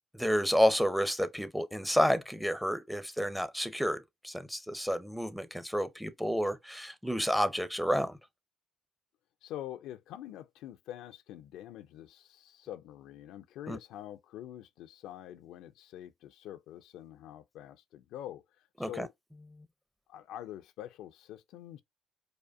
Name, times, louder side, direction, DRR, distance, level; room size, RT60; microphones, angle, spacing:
voice 1, 0.1-8.2 13.7-13.8 18.8-19.1, equal, ahead, 0.6 m, -30 dB
voice 2, 9.4-19.1 20.1-21.8, left 12 dB, 75° left, 0.4 m, -45 dB
4.9 x 2.2 x 2.4 m
hypercardioid pair, 60°, 0 cm